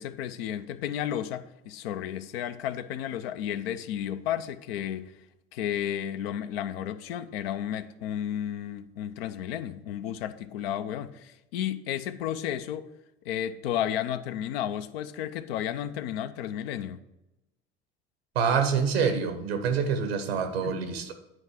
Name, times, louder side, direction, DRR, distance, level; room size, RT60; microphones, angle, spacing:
voice 1, 0.0-5.1 5.5-12.9 13.2-17.0 20.4-20.8, left 10 dB, 75° left, 0.6 m, -33 dB
voice 2, 18.3-21.1, right 6 dB, 85° right, 1.1 m, -26 dB
9.7 x 4.8 x 4.9 m
hypercardioid pair, 65°, 30 cm